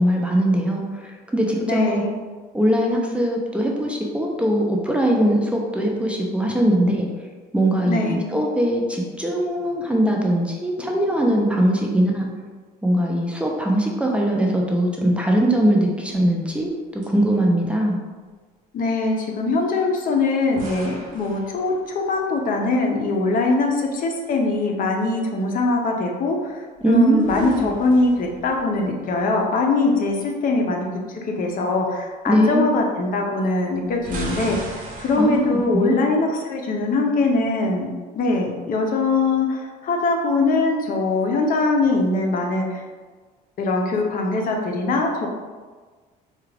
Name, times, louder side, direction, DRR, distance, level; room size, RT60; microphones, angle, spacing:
voice 1, 0.0-2.0 2.5-7.1 7.5-12.3 12.8-18.0 26.8-27.7 32.3-32.7 35.2-35.4 35.7-36.1, right 1 dB, 5° right, -1 dB, 0.5 m, -21 dB
voice 2, 1.6-2.1 7.8-8.3 18.7-42.8 43.6-45.3, left 3 dB, 55° left, 1 dB, 0.7 m, -22 dB
sound 1, 16.1-16.8 17.0-17.1 20.6-22.2 26.7-29.3 33.7-35.8, right 2 dB, 55° right, 0.9 m, -38 dB
4.7 x 2.3 x 3.3 m, 1.4 s
cardioid pair, 110°, 17 cm